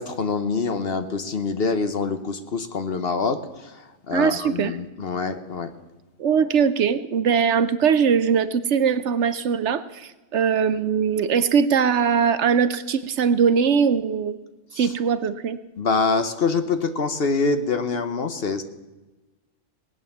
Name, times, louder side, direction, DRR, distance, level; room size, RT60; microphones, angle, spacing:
voice 1, 0.0-5.7 14.7-14.9 15.8-18.6, left 4 dB, 50° left, 9 dB, 1.1 m, -25 dB
voice 2, 4.1-4.8 6.2-14.4 14.8-15.6, right 6 dB, 65° right, 13 dB, 0.9 m, -21 dB
18.5 x 9.2 x 7.1 m, 1.1 s
omnidirectional pair, 1.4 m